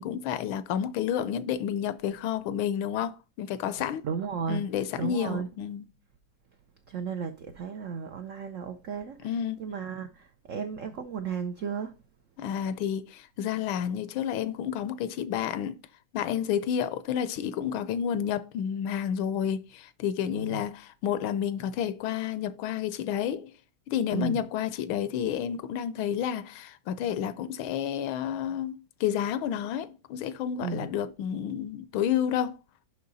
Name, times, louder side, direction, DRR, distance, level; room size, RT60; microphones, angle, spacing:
voice 1, 0.0-4.0 4.5-5.9 9.2-9.6 12.4-15.8 16.1-23.5 23.9-32.6, left 9 dB, 80° left, 1.4 m, -30 dB
voice 2, 4.0-4.6 5.0-5.5 6.9-9.3 9.6-11.9 20.3-20.7 24.1-24.4 30.6-30.9, right 6 dB, 85° right, 0.6 m, -34 dB
6.7 x 5.8 x 4.0 m
omnidirectional pair, 2.2 m